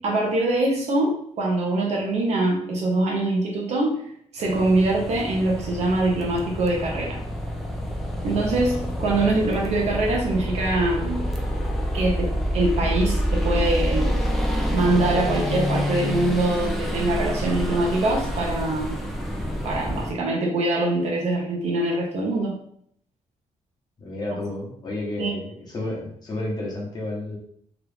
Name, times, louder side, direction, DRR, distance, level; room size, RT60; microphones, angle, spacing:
voice 1, 0.0-3.9 4.3-7.2 8.2-11.2 11.9-14.1 14.7-19.0 19.6-22.5 25.2-25.3, right 2 dB, 60° right, -2 dB, 0.7 m, -23 dB
sound 1, 4.4-20.2, equal, ahead, 0.4 m, -27 dB
voice 2, 24.0-27.4, left 2 dB, 35° left, -3 dB, 1.0 m, -31 dB
3.0 x 2.4 x 3.3 m, 0.66 s
wide cardioid pair, 175°, 13 cm